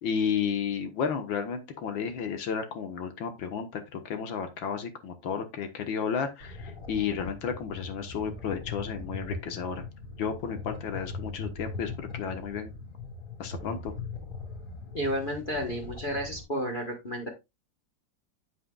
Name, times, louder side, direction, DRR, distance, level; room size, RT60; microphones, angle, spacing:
voice 1, 0.0-9.9 10.2-12.7 13.4-13.9, left 7 dB, 80° left, 2.0 m, -32 dB
sound 1, 6.4-16.4, left 3 dB, 55° left, 3.5 m, -40 dB
voice 2, 14.9-17.3, equal, 30° left, 1.3 m, -31 dB
8.5 x 8.3 x 2.3 m
omnidirectional pair, 2.1 m